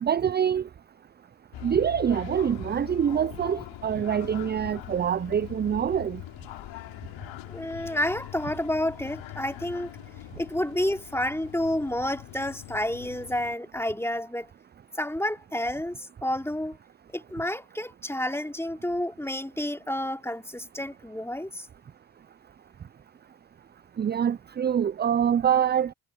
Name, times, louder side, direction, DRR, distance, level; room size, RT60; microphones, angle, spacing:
voice 1, 0.0-0.7 1.6-6.2 24.0-25.9, right 8 dB, 25° right, 0.4 m, -25 dB
sound 1, 1.5-13.6, left 16 dB, 75° left, 3.6 m, -42 dB
voice 2, 7.5-9.9 10.4-14.5 15.0-16.8 17.1-21.7, left 1 dB, 5° left, 3.3 m, -30 dB
supercardioid pair, 60°, 45 cm